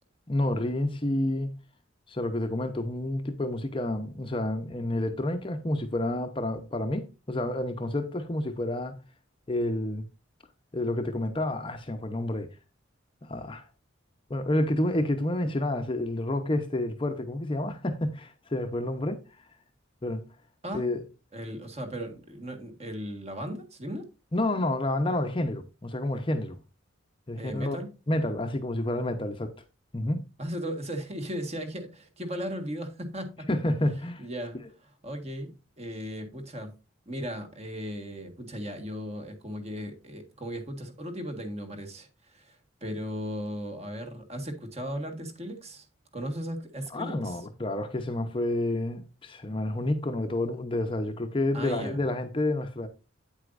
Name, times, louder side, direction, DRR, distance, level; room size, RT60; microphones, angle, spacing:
voice 1, 0.3-1.5 2.1-9.0 9.5-10.0 10.7-12.5 13.2-13.6 14.3-19.2 20.0-20.2 20.7-21.0 24.3-26.6 27.3-27.8 28.1-29.5 29.9-30.2 33.5-34.3 46.9-52.9, left 1 dB, 25° left, 0.8 m, -29 dB
voice 2, 21.3-24.1 27.4-27.9 30.4-33.5 34.2-36.7 37.1-45.9 46.1-47.4 51.5-52.0, equal, 30° right, 1.6 m, -37 dB
8.9 x 8.0 x 2.5 m
head